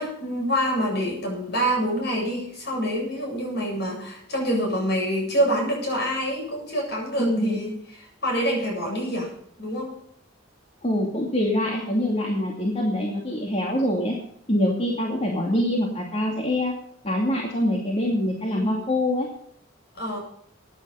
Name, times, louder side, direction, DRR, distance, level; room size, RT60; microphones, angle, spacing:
voice 1, 0.0-7.7 8.2-9.3 9.6-9.9 19.9-20.2, equal, 60° left, 0 dB, 7.9 m, -26 dB
voice 2, 7.2-7.6 10.8-14.1 14.5-16.7 17.0-19.3, left 1 dB, 35° left, -1 dB, 2.4 m, -24 dB
15.5 x 10.0 x 5.7 m, 0.66 s
head